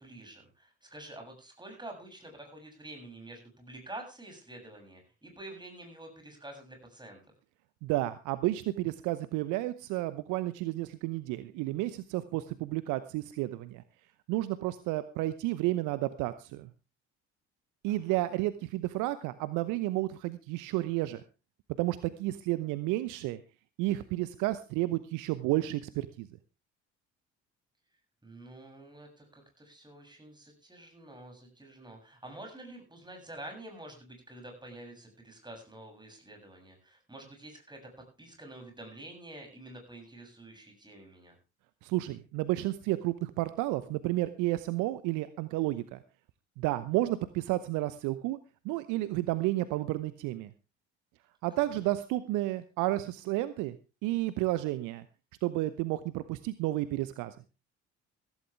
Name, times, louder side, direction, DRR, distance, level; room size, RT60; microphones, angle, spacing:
voice 1, 0.0-7.2 17.9-18.2 28.2-37.9 38.2-41.4 51.6-51.7, right 1 dB, 15° right, 3 dB, 7.6 m, -48 dB
voice 2, 7.8-13.8 14.3-16.7 17.8-21.2 21.8-23.4 23.8-26.3 41.8-46.0 46.6-48.4 48.6-50.5 51.4-53.8 54.0-55.0 55.4-57.3, right 17 dB, 60° right, 14 dB, 0.9 m, -31 dB
15.0 x 14.5 x 3.4 m, 0.30 s
figure-of-eight pair, 50°, 34 cm